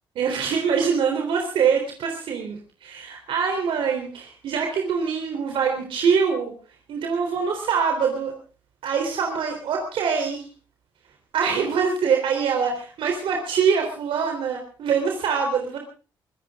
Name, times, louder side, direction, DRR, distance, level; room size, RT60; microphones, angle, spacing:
voice 1, 0.2-6.5 6.9-8.4 8.8-10.5 11.3-15.8, right 6 dB, 80° right, 3 dB, 3.7 m, -24 dB
24.0 x 16.0 x 3.7 m, 0.37 s
cardioid pair, 75°, 9 cm